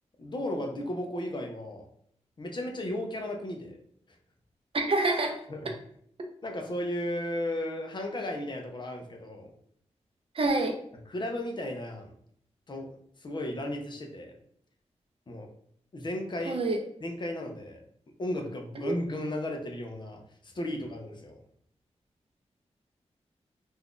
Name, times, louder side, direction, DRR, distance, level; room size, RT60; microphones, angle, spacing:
voice 1, 0.2-1.9 2.4-3.8 5.5-5.7 6.4-9.5 11.1-12.1 12.7-12.9 13.2-14.4 15.3-15.5 15.9-16.6 17.0-17.8 18.2-21.4, left 1 dB, 40° left, 2 dB, 0.6 m, -35 dB
voice 2, 4.7-5.3 10.4-10.7 16.5-16.8 18.8-18.9, right 2 dB, 50° right, 4 dB, 0.6 m, -26 dB
2.6 x 2.4 x 3.6 m, 0.66 s
wide cardioid pair, 120°, 12 cm